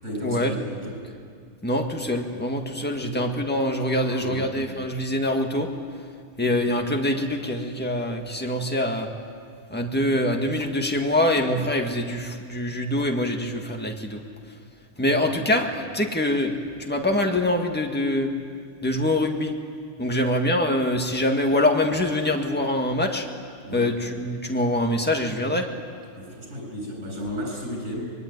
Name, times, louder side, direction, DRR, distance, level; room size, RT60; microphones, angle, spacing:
voice 1, 0.0-1.1 2.8-3.2 4.0-4.5 6.8-6.9 15.1-15.4 20.0-20.3 23.6-23.9 26.2-28.1, equal, 85° right, 1 dB, 7.9 m, -34 dB
voice 2, 1.6-5.7 6.4-9.1 9.7-14.2 15.0-16.5 16.8-18.3 18.8-19.5 20.0-23.3 23.7-25.7, left 1 dB, 10° left, 2 dB, 1.8 m, -24 dB
24.5 x 22.0 x 9.6 m, 2.2 s
omnidirectional pair, 1.2 m